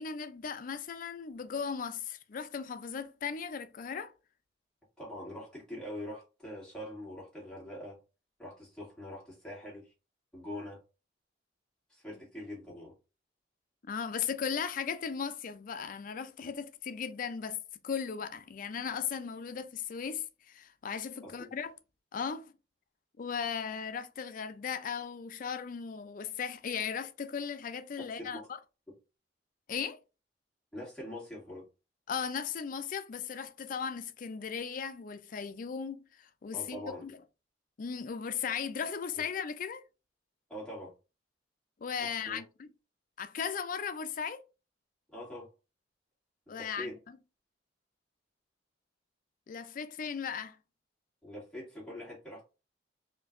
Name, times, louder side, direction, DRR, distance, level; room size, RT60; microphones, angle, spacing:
voice 1, 0.0-4.1 13.9-21.7 22.1-22.5 23.2-28.6 29.7-30.0 32.1-37.2 37.8-39.8 41.8-42.7 43.2-44.4 46.5-46.9 49.5-50.6, left 6 dB, 45° left, 0.4 m, -37 dB
voice 2, 5.0-8.0 8.4-9.9 10.3-10.8 11.9-12.9 21.2-21.5 28.3-28.4 30.7-31.7 36.5-37.0 39.1-39.2 40.5-40.9 42.0-42.4 45.1-45.5 46.5-46.9 51.2-52.4, left 1 dB, 5° left, 2.1 m, -43 dB
4.3 x 2.6 x 2.5 m
head